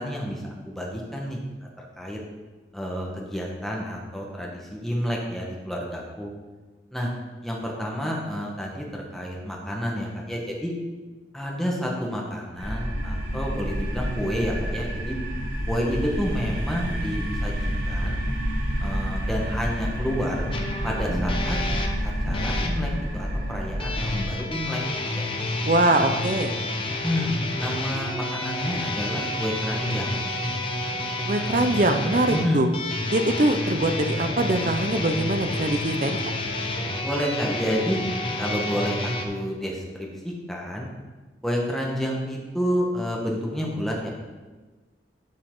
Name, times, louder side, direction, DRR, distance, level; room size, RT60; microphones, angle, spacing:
voice 1, 0.0-1.4 1.8-2.2 2.7-6.3 6.9-7.1 7.4-10.7 11.3-15.2 15.7-18.2 18.8-20.4 20.8-21.6 22.0-24.8 25.1-25.2 25.9-26.0 26.9-30.2 32.3-32.6 37.0-38.0 38.4-40.9 41.4-44.1, equal, ahead, -2 dB, 1.3 m, -29 dB
sound 1, 12.6-24.3, equal, 70° right, 2.1 m, -29 dB
sound 2, 20.5-22.8 23.8-39.2, left 2 dB, 30° left, 0.8 m, -29 dB
voice 2, 25.6-26.5 31.3-32.7 33.1-36.2, right 2 dB, 40° right, 7 dB, 0.5 m, -23 dB
11.5 x 5.8 x 3.8 m, 1.3 s
head